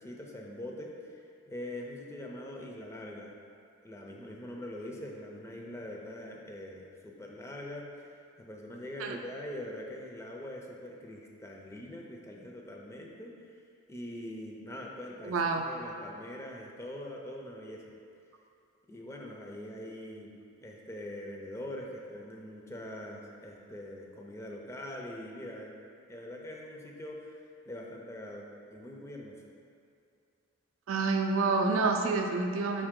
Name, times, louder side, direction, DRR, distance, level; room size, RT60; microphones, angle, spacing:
voice 1, 0.0-3.4 3.8-13.3 13.9-17.9 18.9-20.3 20.6-25.7 26.1-27.4 27.7-29.4, left 1 dB, 15° left, -1 dB, 0.4 m, -43 dB
voice 2, 15.2-15.6 30.9-32.9, right 3 dB, 90° right, 3 dB, 0.4 m, -28 dB
4.7 x 2.9 x 3.6 m, 2.4 s
head